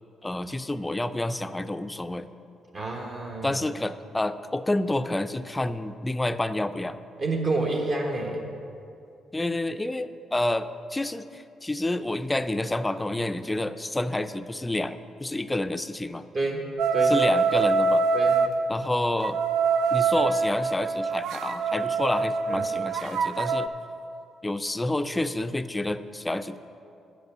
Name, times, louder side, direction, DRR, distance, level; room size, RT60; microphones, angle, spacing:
voice 1, 0.2-2.3 3.4-7.0 9.3-16.3 17.1-18.1 18.7-19.4 19.9-23.7 24.4-26.6, left 1 dB, 15° left, 10 dB, 0.4 m, -29 dB
voice 2, 2.7-3.6 7.2-8.5 16.3-16.7 16.9-17.2 18.1-18.4 22.5-22.7, right 2 dB, 45° right, -1 dB, 1.2 m, -28 dB
sound 1, 16.8-18.5 19.2-23.7, right 4 dB, 80° right, 0.4 m, -24 dB
8.8 x 5.3 x 7.9 m, 2.6 s
cardioid pair, 90°, 0 cm